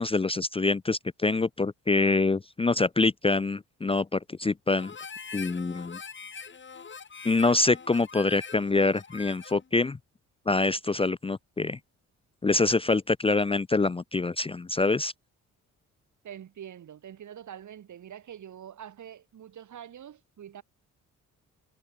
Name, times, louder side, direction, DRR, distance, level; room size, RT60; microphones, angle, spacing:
voice 1, 0.0-4.9 5.3-6.0 7.2-10.0 10.5-11.8 12.4-15.1, left 3 dB, 15° left, 0.6 m, -25 dB
Harmonica, 4.8-9.7, left 5 dB, 35° left, 2.1 m, -43 dB
voice 2, 16.2-20.6, right 9 dB, 60° right, 3.1 m, -45 dB
cardioid pair, 85°, 32 cm